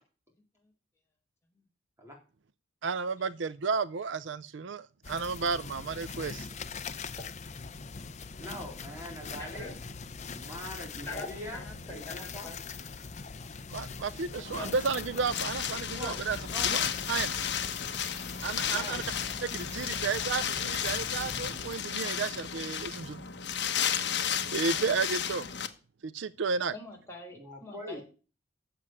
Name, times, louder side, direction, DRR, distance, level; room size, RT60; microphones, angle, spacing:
voice 1, 2.8-6.5 13.7-16.4 16.6-16.8 17.1-17.3 18.4-19.0 19.4-23.2 24.5-25.5 26.0-26.7, right 5 dB, 65° right, 0.5 m, -32 dB
sound 1, 5.0-21.8, left 5 dB, 35° left, 0.6 m, -42 dB
voice 2, 8.4-9.8 10.3-12.5 15.8-16.9 18.6-19.3 27.3-28.0, left 1 dB, 15° right, 3.8 m, -43 dB
voice 3, 9.4-9.7 11.1-12.6 14.5-14.8 26.7-28.0, left 3 dB, 15° left, 3.9 m, -43 dB
Wind, 14.4-25.7, left 8 dB, 60° left, 1.1 m, -33 dB
8.4 x 7.3 x 8.8 m
head